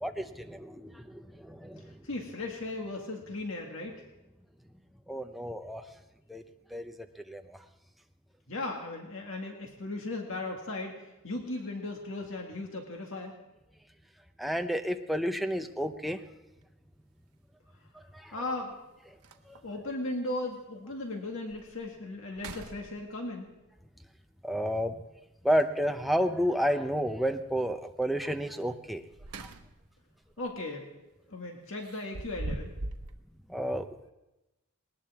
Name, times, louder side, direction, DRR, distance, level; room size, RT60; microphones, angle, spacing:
voice 1, 0.0-1.8 5.1-5.8 6.3-6.4 6.7-6.9 7.3-7.4 14.4-16.2 18.2-18.3 19.5-19.6 24.4-24.9 25.4-29.0 29.4-29.5 33.5-34.1, equal, ahead, 5 dB, 0.8 m, -30 dB
voice 2, 2.0-4.0 8.5-13.3 18.3-18.8 19.6-23.5 30.4-30.9 31.3-32.7, left 2 dB, 65° left, 1 dB, 2.0 m, -37 dB
sound 1, 16.5-16.6 18.4-18.5 18.9-19.0 19.2-19.8 20.4-20.5 21.0-21.1 21.5-21.9 22.3-23.4 25.5-26.1 28.9-29.9 30.3-30.5 31.8-33.1, right 2 dB, 90° right, 1.2 m, -41 dB
20.0 x 19.0 x 3.6 m, 1.0 s
head